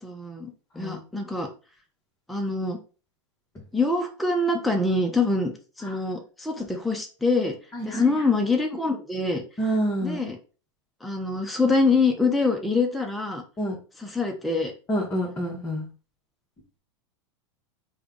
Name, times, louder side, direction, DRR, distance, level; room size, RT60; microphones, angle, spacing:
voice 1, 0.0-1.5 2.3-2.8 3.7-5.5 5.8-7.6 7.8-9.4 10.0-10.4 11.0-13.4 14.0-14.7, left 3 dB, ahead, 2 dB, 0.5 m, -25 dB
voice 2, 7.7-8.1 9.6-10.3 13.6-13.8 14.9-15.9, right 1 dB, 15° left, -4 dB, 1.0 m, -28 dB
3.4 x 2.2 x 3.7 m, 0.35 s
hypercardioid pair, 115°, 16 cm